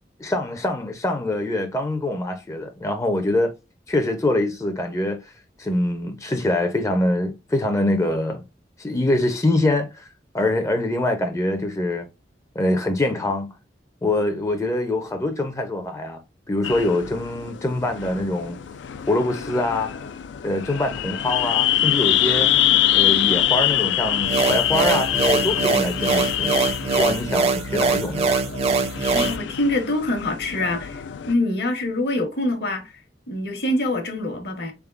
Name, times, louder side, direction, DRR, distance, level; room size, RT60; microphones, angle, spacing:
voice 1, 0.2-3.5 3.9-5.3 5.6-8.4 8.8-12.1 12.6-13.5 14.0-16.2 16.5-18.6 19.1-19.9 20.4-22.5 22.9-26.5 26.9-28.3, left 1 dB, 15° left, 0.4 m, -24 dB
sound 1, 16.6-31.3, left 12 dB, 85° left, 0.4 m, -24 dB
sound 2, 24.2-29.4, right 4 dB, 35° right, 0.5 m, -22 dB
voice 2, 29.1-33.0 33.3-34.7, left 1 dB, 60° left, 1.0 m, -25 dB
3.7 x 3.5 x 2.3 m
head